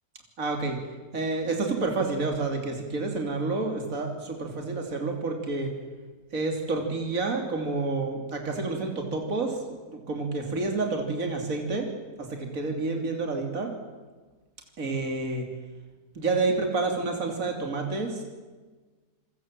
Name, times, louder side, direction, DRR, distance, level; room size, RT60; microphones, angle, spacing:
voice 1, 0.4-0.8 1.1-5.7 6.3-11.9 12.2-13.7 14.8-15.5 16.2-18.2, right 3 dB, 55° right, 3 dB, 3.5 m, -29 dB
28.5 x 23.0 x 7.6 m, 1.3 s
omnidirectional pair, 1.7 m